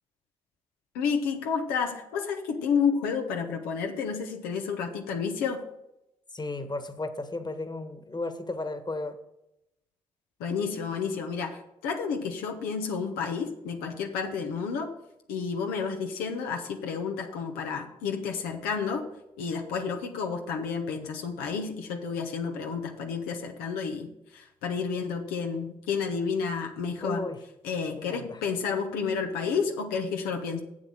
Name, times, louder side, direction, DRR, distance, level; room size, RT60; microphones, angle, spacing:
voice 1, 0.9-5.6 10.4-14.9 15.3-19.0 19.4-27.2 27.6-30.6, left 6 dB, 85° left, 3 dB, 1.0 m, -30 dB
voice 2, 6.3-9.2 27.0-27.4 27.9-28.4, left 2 dB, 30° left, 9 dB, 1.5 m, -34 dB
7.7 x 7.6 x 6.4 m, 0.85 s
hypercardioid pair, 45°, 15 cm